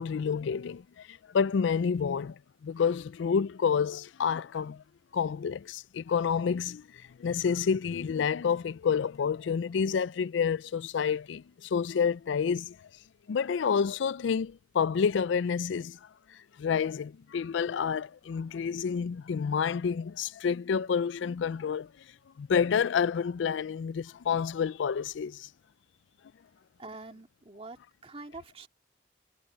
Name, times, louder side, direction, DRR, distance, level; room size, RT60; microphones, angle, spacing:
voice 1, 0.0-4.8 5.1-12.8 13.3-16.0 16.6-21.9 22.4-25.5, left 6 dB, 80° left, 0.4 m, -29 dB
voice 2, 26.8-28.7, right 3 dB, 30° right, 2.3 m, -45 dB
head